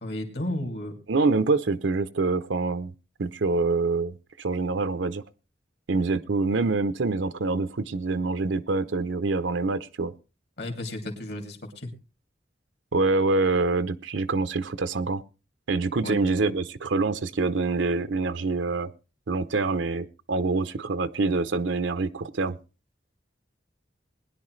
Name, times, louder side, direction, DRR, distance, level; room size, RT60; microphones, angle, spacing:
voice 1, 0.0-1.0 10.6-11.9 16.0-16.2, left 1 dB, 60° left, 4 dB, 2.6 m, -33 dB
voice 2, 1.1-2.9 3.2-5.2 5.9-10.1 12.9-15.2 15.7-18.9 19.3-22.6, right 3 dB, 85° right, 12 dB, 0.7 m, -25 dB
20.5 x 10.5 x 3.2 m, 0.32 s
head